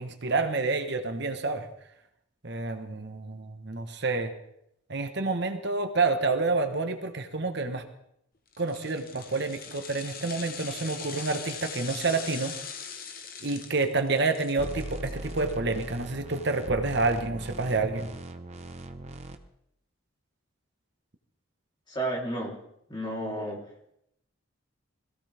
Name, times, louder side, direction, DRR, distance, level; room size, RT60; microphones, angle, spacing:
voice 1, 0.0-1.7 2.4-4.3 4.9-7.8 8.6-12.5 13.4-18.1, right 3 dB, 55° right, 6 dB, 1.2 m, -28 dB
sound 1, 8.5-15.8 16.2-16.3, left 7 dB, 45° left, 1.2 m, -41 dB
sound 2, 14.6-19.4, right 1 dB, 30° right, 1.0 m, -39 dB
voice 2, 21.9-22.5 22.9-23.6, right 1 dB, 20° left, -2 dB, 3.5 m, -31 dB
22.0 x 16.0 x 3.5 m, 0.76 s
head